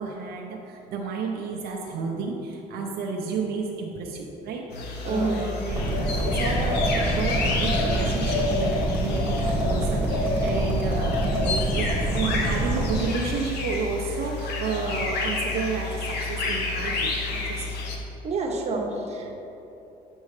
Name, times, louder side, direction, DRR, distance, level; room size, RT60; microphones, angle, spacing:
voice 1, 0.0-17.7, right 4 dB, 70° right, 0 dB, 0.7 m, -31 dB
sound 1, 4.7-18.0, left 3 dB, 75° left, 1.0 m, -29 dB
voice 2, 5.1-5.4 18.2-19.4, right 3 dB, 40° right, 0 dB, 1.0 m, -27 dB
sound 2, 5.7-13.0, right 2 dB, 10° right, 1.4 m, -27 dB
8.2 x 5.4 x 3.2 m, 3.0 s
cardioid pair, 110°, 17 cm